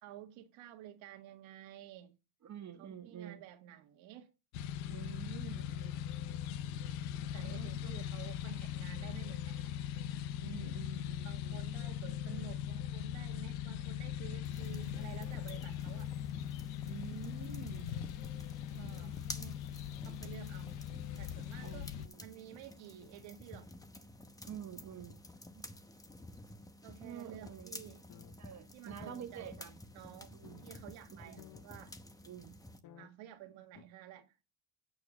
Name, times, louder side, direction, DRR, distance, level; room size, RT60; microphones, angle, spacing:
voice 1, 0.0-2.2 2.8-4.3 5.9-6.0 7.1-9.8 11.2-16.1 18.7-19.1 20.0-20.8 21.2-21.9 22.2-23.7 26.8-28.0 28.7-29.5 29.9-30.4 30.6-32.0 33.0-34.3, right 12 dB, 70° right, 1.7 m, -52 dB
voice 2, 2.4-3.4 4.9-6.0 7.3-8.0 10.4-11.8 16.8-17.9 18.7-19.7 21.6-22.2 24.4-25.2 25.5-25.7 27.0-27.8 28.4-29.8 30.3-30.7 31.1-31.4 32.2-32.6, right 9 dB, 35° right, 1.2 m, -49 dB
sound 1, 4.5-22.1, left 10 dB, 85° left, 0.8 m, -40 dB
sound 2, 14.4-32.8, left 1 dB, 10° left, 0.8 m, -52 dB
sound 3, 28.1-28.4 28.6-28.7 29.0-29.2 29.9-30.0 30.4-30.7 31.0-31.1 31.4-31.6 32.2-32.3 32.8-33.1 33.7-33.8, left 9 dB, 50° left, 1.1 m, -55 dB
9.0 x 4.8 x 6.1 m
cardioid pair, 135°, 47 cm